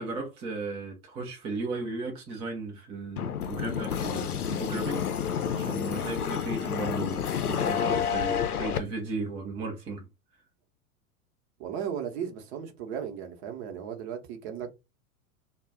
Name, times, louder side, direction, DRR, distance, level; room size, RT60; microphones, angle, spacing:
voice 1, 0.0-5.1 5.5-10.1, right 3 dB, 15° right, 0.3 m, -36 dB
sound 1, 3.2-8.8, left 7 dB, 85° left, 0.5 m, -29 dB
voice 2, 11.6-14.8, right 8 dB, 45° right, 0.8 m, -36 dB
2.3 x 2.1 x 3.4 m
figure-of-eight pair, 90°, 44 cm